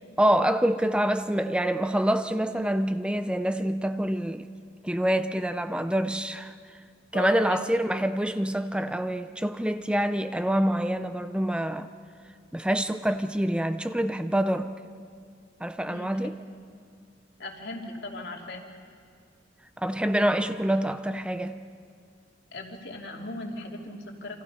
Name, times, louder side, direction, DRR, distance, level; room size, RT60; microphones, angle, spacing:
voice 1, 0.2-4.5 4.8-6.5 7.1-11.9 12.5-14.8 15.6-16.4 19.8-21.6, right 1 dB, 5° right, 0.5 m, -26 dB
voice 2, 7.1-7.6 15.8-16.3 17.4-18.7 22.5-24.4, left 2 dB, 65° left, 2.8 m, -38 dB
28.5 x 26.0 x 5.6 m
head